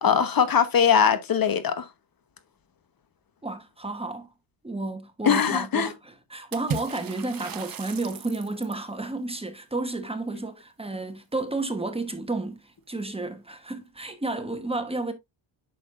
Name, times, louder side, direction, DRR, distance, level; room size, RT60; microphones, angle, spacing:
voice 1, 0.0-1.9 5.2-5.9, left 7 dB, 50° left, 1.1 m, -21 dB
voice 2, 3.4-4.3 4.6-15.1, right 2 dB, 15° right, 1.1 m, -32 dB
Water / Splash splatter, 6.5-8.9, right 6 dB, 50° right, 1.1 m, -36 dB
8.7 x 6.3 x 2.5 m
wide cardioid pair, 125°, 44 cm